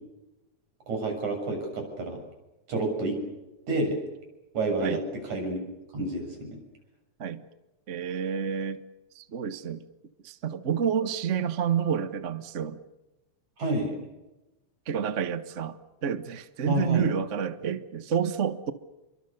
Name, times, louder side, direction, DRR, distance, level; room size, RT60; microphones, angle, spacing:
voice 1, 0.9-2.2 2.7-3.2 3.7-4.0 4.5-5.0 5.3-5.6 5.9-6.6 13.6-14.0 16.7-17.1, right 2 dB, 80° right, 3 dB, 8.3 m, -29 dB
voice 2, 7.9-8.8 9.1-9.8 10.2-12.8 14.9-18.7, right 8 dB, 45° right, 11 dB, 0.9 m, -29 dB
29.5 x 24.0 x 6.8 m, 1.0 s
omnidirectional pair, 3.3 m